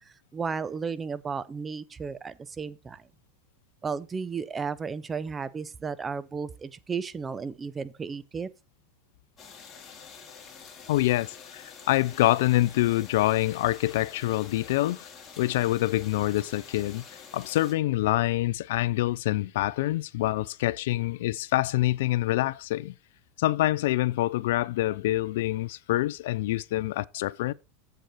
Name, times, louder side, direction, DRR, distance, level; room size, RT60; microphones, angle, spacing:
voice 1, 0.3-3.0 3.8-8.5, right 5 dB, 20° right, 0.7 m, -34 dB
sound 1, 9.4-17.7, left 6 dB, 30° left, 2.4 m, -48 dB
voice 2, 10.9-15.1 15.4-22.9 23.4-27.5, left 16 dB, 70° left, 0.3 m, -26 dB
7.8 x 6.6 x 4.7 m
hypercardioid pair, 105°, 0 cm